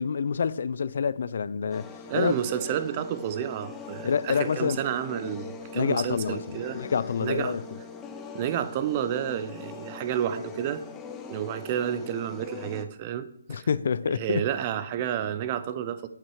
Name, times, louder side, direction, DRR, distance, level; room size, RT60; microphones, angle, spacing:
voice 1, 0.0-1.9 2.1-2.3 4.0-4.8 5.7-7.6 13.5-14.4, left 6 dB, 55° left, 0.5 m, -27 dB
sound 1, 1.7-12.9, left 5 dB, 10° left, 0.7 m, -42 dB
voice 2, 2.1-6.8 7.2-7.6 8.3-10.8 11.3-13.7 14.1-16.1, right 10 dB, 25° right, 0.6 m, -30 dB
8.7 x 8.2 x 4.8 m
hypercardioid pair, 165°, 0 cm